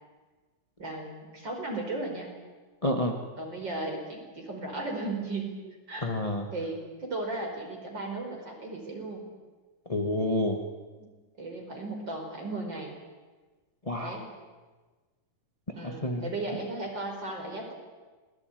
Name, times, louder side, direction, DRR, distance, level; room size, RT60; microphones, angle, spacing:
voice 1, 0.8-2.3 3.4-5.6 5.9-6.1 6.5-9.2 11.0-11.1 11.4-12.9 13.9-14.3 15.7-17.7, right 2 dB, 30° right, 2 dB, 5.5 m, -36 dB
voice 2, 2.8-3.1 6.0-6.4 9.9-10.6 13.9-14.2 16.0-16.2, left 1 dB, 20° left, 3 dB, 0.9 m, -28 dB
27.5 x 20.0 x 9.4 m, 1.3 s
omnidirectional pair, 3.8 m